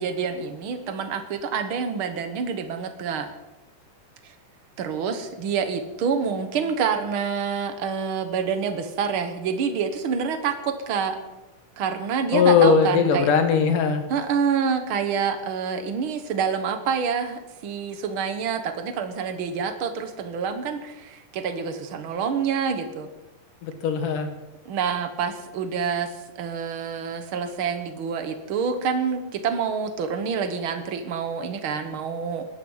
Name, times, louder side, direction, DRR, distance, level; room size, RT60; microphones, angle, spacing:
voice 1, 0.0-3.3 4.2-4.3 4.8-11.2 11.8-13.3 14.1-23.1 24.6-26.1 26.4-32.5, right 6 dB, 65° right, 8 dB, 1.3 m, -27 dB
voice 2, 12.3-14.0 23.6-24.3, left 6 dB, 65° left, 7 dB, 3.0 m, -19 dB
19.0 x 12.0 x 5.6 m, 1.0 s
omnidirectional pair, 4.2 m